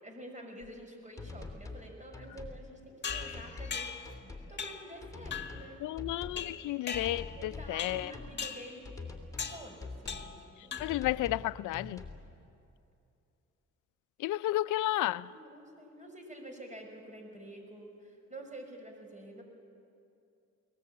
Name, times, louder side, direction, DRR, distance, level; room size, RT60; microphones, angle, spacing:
voice 1, 0.0-3.9 4.5-5.8 7.4-8.8 9.5-10.3 10.6-10.9 15.3-19.4, right 1 dB, 25° right, 5.7 m, -48 dB
sound 1, 0.6-0.7 1.2-1.9 2.1-2.6 3.1-3.8 4.0-4.5 5.0-5.7 6.0-6.5 6.9-8.3 8.8-9.5 9.8-10.3 10.8-11.5 11.7-12.2, left 3 dB, 10° left, 3.2 m, -44 dB
sound 2, 3.0-4.2 4.6-4.9 5.3-5.7 6.4-7.4 7.8-8.1 8.4-8.7 9.4-9.7 10.1-10.4 10.7-11.1, left 6 dB, 35° left, 1.8 m, -39 dB
voice 2, 5.8-8.1 10.8-12.0 14.2-15.3, left 16 dB, 85° left, 0.5 m, -32 dB
22.5 x 19.5 x 8.6 m
cardioid pair, 90°, 30 cm